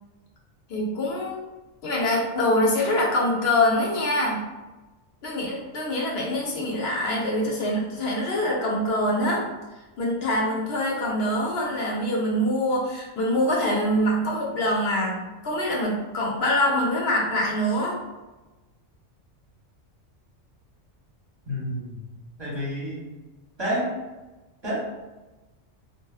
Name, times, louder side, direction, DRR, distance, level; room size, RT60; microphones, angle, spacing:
voice 1, 0.7-1.4 1.8-4.4 5.2-9.4 10.0-18.0, left 1 dB, 60° left, -2 dB, 0.8 m, -24 dB
voice 2, 21.5-22.0 22.4-23.1 23.6-24.0 24.6-24.8, equal, 25° right, -7 dB, 0.7 m, -29 dB
2.5 x 2.3 x 2.3 m, 1.1 s
omnidirectional pair, 1.3 m